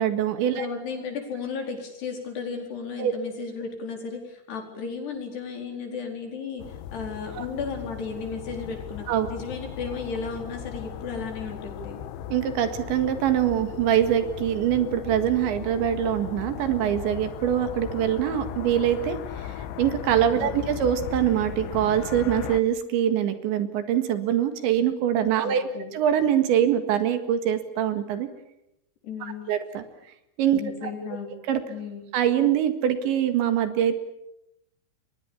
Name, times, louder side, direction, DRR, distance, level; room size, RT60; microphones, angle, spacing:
voice 1, 0.0-0.7 3.0-3.1 7.4-7.5 9.1-9.3 12.3-19.2 19.6-25.7 25.9-28.3 29.2-29.8 30.4-30.6 31.5-31.6 32.1-34.0, right 10 dB, 75° right, 9 dB, 4.1 m, -24 dB
voice 2, 0.5-6.6 6.9-12.0 20.4-20.5 25.4-25.9 29.0-29.6 30.6-31.4 31.7-32.1, left 5 dB, 60° left, 3 dB, 6.4 m, -34 dB
sound 1, 6.6-22.6, left 10 dB, 85° left, 3.6 m, -37 dB
29.0 x 23.5 x 7.2 m, 0.83 s
omnidirectional pair, 5.3 m